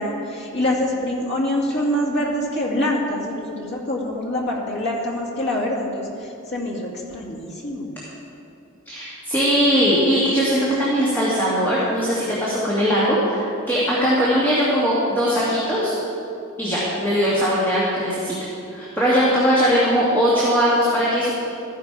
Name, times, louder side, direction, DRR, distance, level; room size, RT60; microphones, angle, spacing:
voice 1, 0.0-7.9, left 1 dB, 55° left, -1 dB, 2.1 m, -25 dB
voice 2, 8.9-15.9 16.6-18.3 18.7-21.5, equal, 10° left, -9 dB, 2.0 m, -20 dB
14.0 x 10.5 x 4.8 m, 2.7 s
head